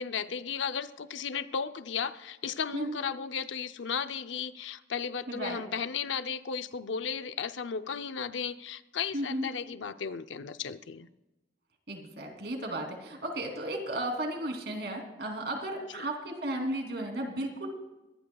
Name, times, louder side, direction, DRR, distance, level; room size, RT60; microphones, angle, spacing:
voice 1, 0.0-11.1 15.9-16.1, left 6 dB, 90° left, 11 dB, 0.6 m, -35 dB
voice 2, 5.3-5.6 9.1-9.5 11.9-17.7, right 1 dB, 60° right, 3 dB, 3.1 m, -34 dB
23.0 x 18.0 x 2.3 m, 1.1 s
head